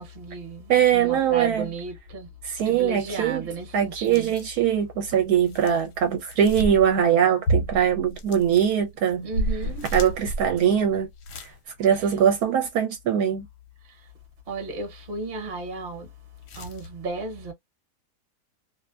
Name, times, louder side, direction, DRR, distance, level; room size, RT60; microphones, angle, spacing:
voice 1, 0.0-2.3 2.6-4.3 9.2-9.8 13.9-14.0 14.5-16.1 16.6-17.5, right 3 dB, 45° right, 1.0 m, -34 dB
voice 2, 0.7-1.7 2.4-3.5 3.7-9.3 9.9-11.1 11.4-11.5 11.8-13.5, right 9 dB, 75° right, 1.0 m, -22 dB
sound 1, 4.0-4.7 5.1-7.1 7.5-11.5 11.9-12.0 16.5-16.9, right 1 dB, 75° left, 1.1 m, -31 dB
2.7 x 2.1 x 2.3 m
omnidirectional pair, 1.7 m